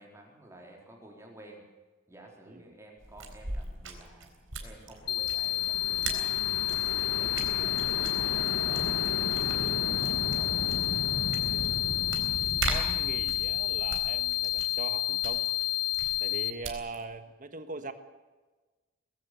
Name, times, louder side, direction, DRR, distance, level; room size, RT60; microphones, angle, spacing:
voice 1, 0.0-1.7 2.1-6.4 6.7-9.0 9.4-10.7, right 1 dB, 15° right, 0 dB, 4.0 m, -52 dB
sound 1, 3.0-17.1, right 4 dB, 80° right, 3.9 m, -41 dB
sound 2, 4.9-14.9, left 2 dB, 85° left, 1.6 m, -37 dB
sound 3, 5.1-16.5, left 17 dB, 50° left, 0.9 m, -30 dB
voice 2, 12.7-15.5 16.2-17.9, right 3 dB, 40° right, 9 dB, 1.4 m, -41 dB
21.0 x 15.5 x 8.3 m, 1.2 s
head